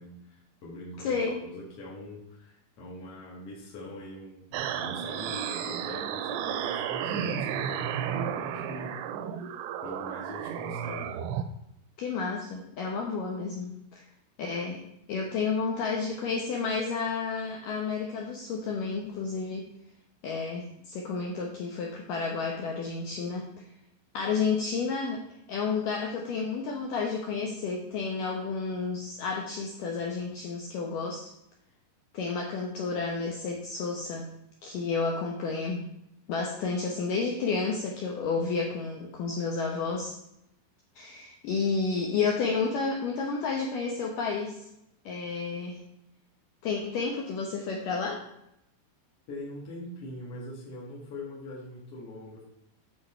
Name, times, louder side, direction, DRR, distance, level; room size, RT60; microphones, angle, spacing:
voice 1, 0.0-9.6 9.8-11.1 49.3-52.4, left 1 dB, 45° left, -5 dB, 2.0 m, -43 dB
voice 2, 1.0-1.4 12.0-14.0 14.4-14.8 15.1-19.7 20.2-23.5 24.1-25.2 25.5-31.3 32.1-34.3 34.6-35.8 36.3-40.2 41.0-44.7 45.1-45.8 46.6-48.2, left 4 dB, 75° left, 0 dB, 2.0 m, -31 dB
sound 1, 4.5-11.4, right 9 dB, 90° right, 3.0 m, -33 dB
9.5 x 6.2 x 4.4 m, 0.81 s
omnidirectional pair, 5.1 m